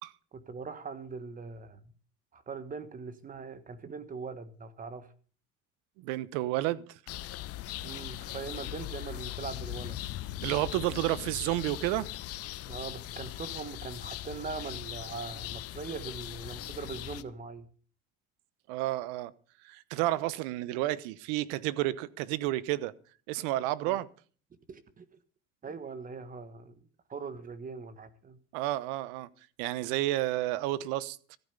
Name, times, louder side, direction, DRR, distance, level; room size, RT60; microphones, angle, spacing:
voice 1, 0.3-1.8 2.3-5.1 7.8-10.0 12.7-17.7 23.8-24.0 24.7-25.0 25.6-26.7 27.1-28.4 29.8-30.0, right 5 dB, 25° right, 1.4 m, -41 dB
voice 2, 6.0-7.0 10.4-12.1 18.7-19.3 19.6-22.9 23.3-24.1 28.5-29.3 29.6-31.4, right 16 dB, 80° right, 1.1 m, -31 dB
sound 1, 7.1-17.2, left 15 dB, 50° left, 0.9 m, -40 dB
14.5 x 9.1 x 6.9 m
cardioid pair, 125°, 30 cm